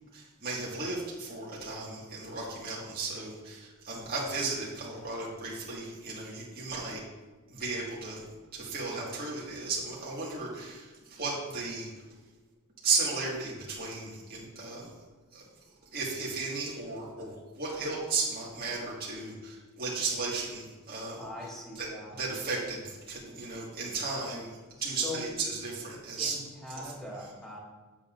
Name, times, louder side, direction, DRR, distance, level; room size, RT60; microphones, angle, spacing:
voice 1, 0.1-7.0 7.5-8.2 8.5-12.0 12.8-14.9 15.3-15.5 15.9-21.2 21.8-24.5 24.8-26.4 26.8-26.9, right 3 dB, 45° right, -5 dB, 1.8 m, -35 dB
voice 2, 21.2-22.2 24.8-25.3 26.1-27.6, left 2 dB, ahead, -5 dB, 1.9 m, -41 dB
8.7 x 8.2 x 2.5 m, 1.3 s
head